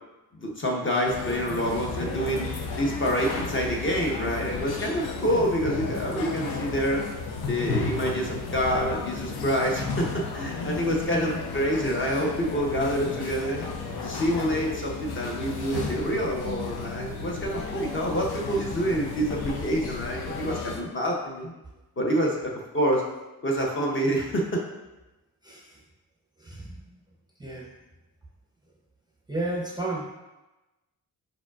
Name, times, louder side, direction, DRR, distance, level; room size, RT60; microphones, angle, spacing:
voice 1, 0.3-2.5 2.8-7.0 7.5-13.6 14.0-21.5 22.0-23.0 23.4-24.6, equal, 35° left, -1 dB, 0.6 m, -27 dB
sound 1, 1.1-20.8, left 4 dB, 85° left, 0.6 m, -33 dB
voice 2, 25.4-25.8 26.4-26.8 27.4-27.7 29.3-30.0, right 2 dB, 10° right, -4 dB, 0.5 m, -32 dB
4.9 x 4.6 x 2.3 m, 1.0 s
wide cardioid pair, 170°, 37 cm